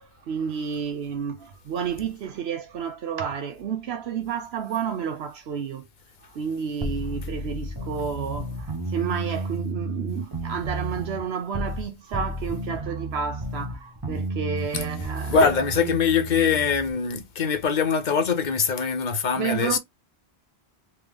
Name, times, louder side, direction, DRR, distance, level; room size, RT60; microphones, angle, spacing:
voice 1, 0.0-5.9 6.2-15.4 15.8-15.9 19.4-19.8, right 7 dB, 75° right, 0.9 m, -31 dB
sound 1, 6.8-11.9 12.1-16.9, right 1 dB, 25° right, 0.8 m, -32 dB
voice 2, 15.3-19.8, left 6 dB, 50° left, 0.7 m, -23 dB
3.4 x 2.9 x 3.3 m
omnidirectional pair, 1.1 m